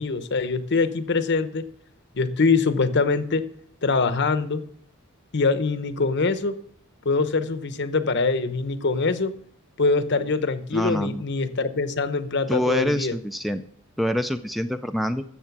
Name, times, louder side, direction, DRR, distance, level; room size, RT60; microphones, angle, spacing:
voice 1, 0.0-1.6 2.1-3.4 3.8-4.6 5.3-6.5 7.0-9.3 9.8-13.1, left 4 dB, 55° left, 11 dB, 0.9 m, -23 dB
voice 2, 10.7-11.2 12.5-13.6 14.0-15.2, equal, ahead, 9 dB, 0.4 m, -25 dB
14.0 x 7.3 x 6.0 m, 0.63 s
head